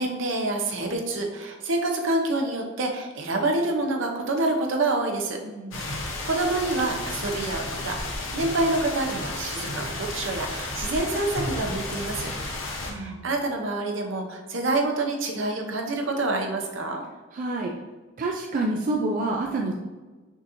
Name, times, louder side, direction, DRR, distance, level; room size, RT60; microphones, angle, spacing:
voice 1, 0.0-5.4 5.8-8.0 8.3-12.3 12.8-17.0, right 2 dB, 70° right, 2 dB, 0.7 m, -27 dB
voice 2, 5.4-5.9 12.9-13.3 17.3-17.7 18.2-19.7, right 2 dB, 40° right, 0 dB, 0.4 m, -28 dB
sound 1, 5.7-12.9, left 2 dB, 80° left, 0.9 m, -32 dB
6.0 x 2.9 x 2.6 m, 1.3 s
head